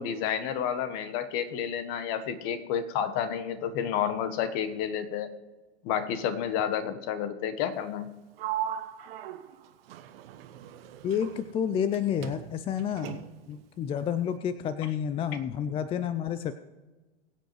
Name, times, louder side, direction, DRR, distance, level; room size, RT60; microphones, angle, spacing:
voice 1, 0.0-5.3 5.8-8.1, left 8 dB, 40° left, 10 dB, 1.3 m, -30 dB
Sliding door, 8.4-12.0 12.2-13.5, right 11 dB, 60° right, 1.3 m, -38 dB
voice 2, 11.0-16.5, left 8 dB, 15° left, 12 dB, 0.4 m, -30 dB
21.5 x 8.1 x 3.2 m, 1.2 s
hypercardioid pair, 100°, 34 cm